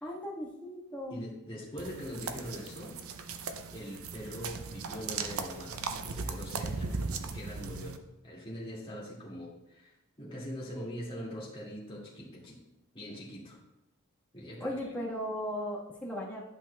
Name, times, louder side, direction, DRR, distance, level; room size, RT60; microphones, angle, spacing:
voice 1, 0.0-1.2 14.6-16.4, equal, 5° left, -6 dB, 1.5 m, -37 dB
voice 2, 1.1-3.0 3.7-6.9 7.2-8.0 8.2-12.6 12.9-13.6 14.3-14.7, equal, 25° left, -6 dB, 2.2 m, -42 dB
sound 1, 1.8-8.0, right 4 dB, 80° right, 0.6 m, -38 dB
12.0 x 6.0 x 2.3 m, 0.92 s
head